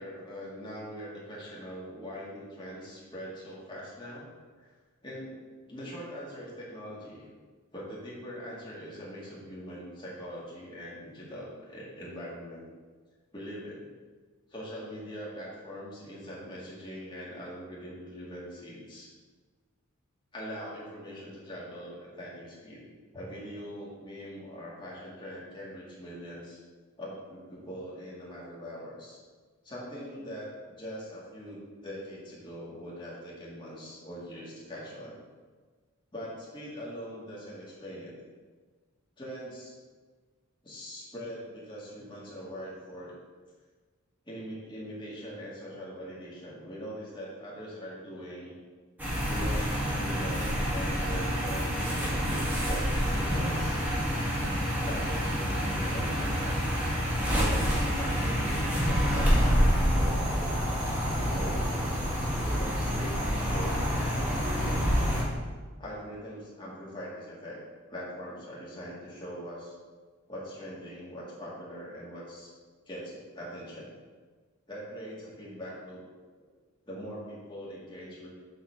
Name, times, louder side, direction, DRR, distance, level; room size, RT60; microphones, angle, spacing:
voice 1, 0.0-4.3 4.6-4.7 5.0-7.3 7.7-12.7 13.3-13.8 14.5-19.1 20.3-22.8 23.1-26.6 27.0-29.2 29.6-35.2 36.1-38.1 39.2-39.8 40.6-43.1 44.2-48.6 49.3-53.8 54.8-56.6 57.4-60.7 61.2-61.9 62.4-65.1 65.8-67.6 67.9-69.7 70.3-72.5 72.9-73.9 74.7-76.0 76.9-78.3, equal, 20° left, -6 dB, 2.3 m, -42 dB
sound 1, 49.0-65.2, equal, 10° right, 1.8 m, -27 dB
8.0 x 4.2 x 6.6 m, 1.4 s
head